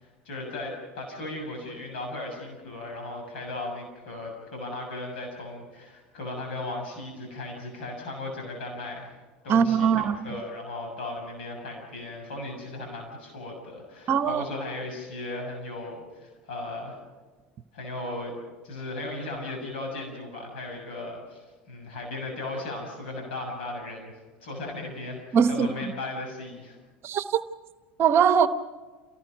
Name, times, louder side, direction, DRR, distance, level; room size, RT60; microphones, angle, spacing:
voice 1, 0.2-9.2 9.4-17.0 17.7-18.3 18.6-24.1 24.4-26.8, left 2 dB, 75° left, 6.8 m, -36 dB
voice 2, 9.5-10.1 14.1-14.4 25.3-25.9 27.0-27.4 28.0-28.5, right 7 dB, 45° right, 1.0 m, -21 dB
28.5 x 19.0 x 5.3 m
hypercardioid pair, 80°, 6 cm